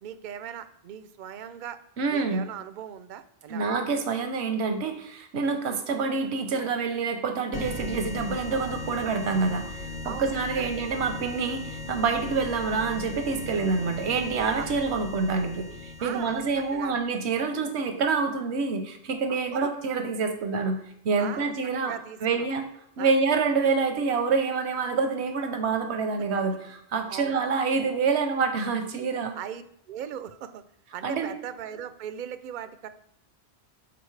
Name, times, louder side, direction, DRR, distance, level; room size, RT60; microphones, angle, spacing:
voice 1, 0.0-1.8 2.1-3.7 10.0-10.7 14.6-14.7 16.0-16.4 16.7-17.0 19.3-19.7 21.2-21.5 21.8-22.5 23.0-23.1 27.1-27.4 29.4-30.6 30.9-32.9, right 9 dB, 55° right, 12 dB, 0.6 m, -39 dB
voice 2, 2.0-2.5 3.5-20.8 21.0-21.9 22.2-22.6 23.0-29.3 31.0-31.3, right 4 dB, 85° right, 6 dB, 1.1 m, -27 dB
sound 1, 7.5-16.9, left 2 dB, 45° left, 0.9 m, -38 dB
11.0 x 4.1 x 3.2 m, 0.73 s
omnidirectional pair, 1.1 m